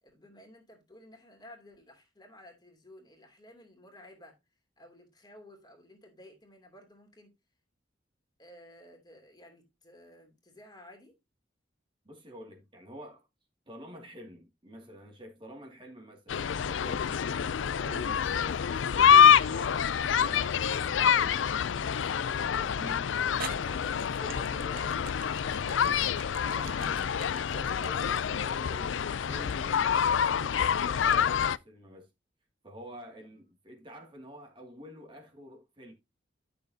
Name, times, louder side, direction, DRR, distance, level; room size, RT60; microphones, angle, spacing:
voice 1, 0.0-4.4 4.8-7.3 8.4-11.1, left 1 dB, 25° left, 2.9 m, -54 dB
voice 2, 12.0-13.3 13.7-17.5 17.8-23.1 23.4-25.1 25.5-26.0 26.4-32.1 32.6-35.9, equal, 25° right, 2.4 m, -48 dB
sound 1, 16.3-31.6, left 8 dB, 80° left, 0.4 m, -26 dB
sound 2, 19.3-19.9 20.6-20.8 22.6-22.7 23.4-29.6, right 7 dB, 50° right, 0.8 m, -46 dB
12.0 x 6.9 x 2.8 m
head